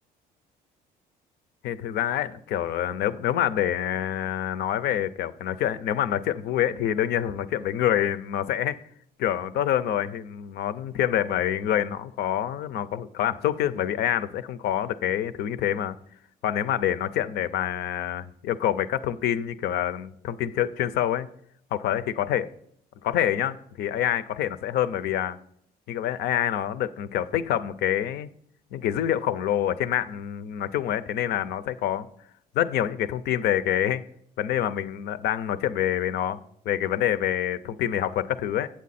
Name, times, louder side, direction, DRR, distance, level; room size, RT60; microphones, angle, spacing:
voice 1, 1.6-8.8 9.2-16.0 16.4-21.3 21.7-22.5 23.0-25.4 25.9-28.3 28.7-32.1 32.5-34.0 34.4-38.7, left 11 dB, 70° left, 0.5 m, -26 dB
8.2 x 7.4 x 4.1 m
cardioid pair, 110°, 17 cm